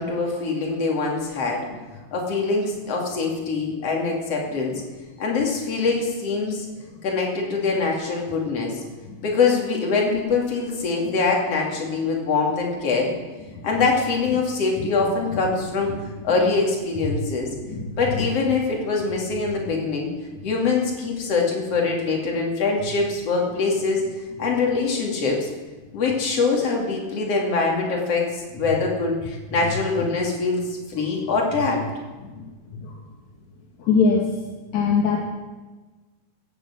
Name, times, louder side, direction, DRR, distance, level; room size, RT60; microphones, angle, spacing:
voice 1, 0.0-1.7 2.1-4.8 5.2-6.7 7.0-8.8 9.2-13.1 13.6-15.9 16.2-17.5 18.0-20.1 20.4-24.1 24.4-25.5 25.9-31.8, left 4 dB, 40° left, -1 dB, 3.1 m, -23 dB
voice 2, 17.7-18.3 32.2-32.5 32.8-33.0 33.8-34.3 34.7-35.3, left 5 dB, 60° left, 0 dB, 2.0 m, -23 dB
15.5 x 9.2 x 7.5 m, 1.3 s
omnidirectional pair, 5.1 m